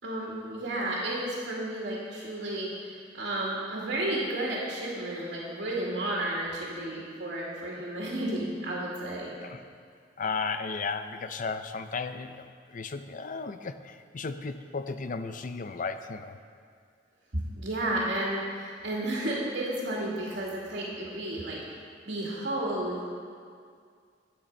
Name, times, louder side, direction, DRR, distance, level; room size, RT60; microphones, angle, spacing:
voice 1, 0.0-2.9 3.2-9.3 17.3-21.6 22.1-23.1, right 1 dB, 65° right, -5 dB, 2.2 m, -32 dB
voice 2, 10.2-16.4, left 4 dB, 45° left, 10 dB, 0.5 m, -35 dB
12.0 x 8.8 x 5.4 m, 2.2 s
head